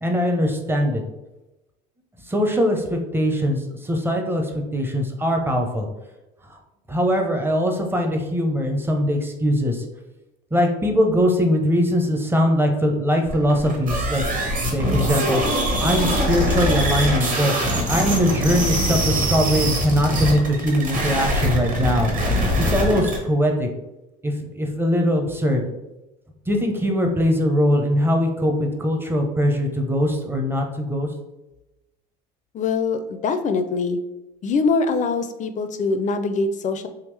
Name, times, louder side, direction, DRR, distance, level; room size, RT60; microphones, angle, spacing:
voice 1, 0.0-1.0 2.3-5.9 6.5-6.6 6.9-9.8 10.5-14.2 14.7-15.4 15.8-17.5 17.9-22.1 22.6-23.7 24.2-25.6 26.5-31.1, equal, 10° right, 3 dB, 0.6 m, -21 dB
sound 1, 13.3-23.2, equal, 40° right, 1.1 m, -23 dB
voice 2, 32.5-34.0 34.4-36.9, left 4 dB, 35° left, 9 dB, 0.4 m, -23 dB
3.5 x 2.8 x 3.2 m, 0.99 s
supercardioid pair, 105°, 21 cm